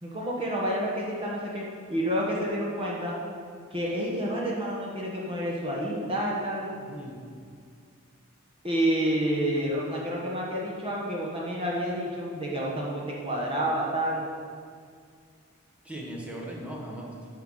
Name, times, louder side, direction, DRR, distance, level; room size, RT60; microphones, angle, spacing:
voice 1, 0.0-1.6 1.9-3.2 3.7-6.8 8.6-14.3, equal, 25° right, -4 dB, 1.5 m, -29 dB
voice 2, 6.8-7.2 15.8-17.3, right 1 dB, 5° right, -3 dB, 1.5 m, -38 dB
9.2 x 5.9 x 6.4 m, 2.2 s
head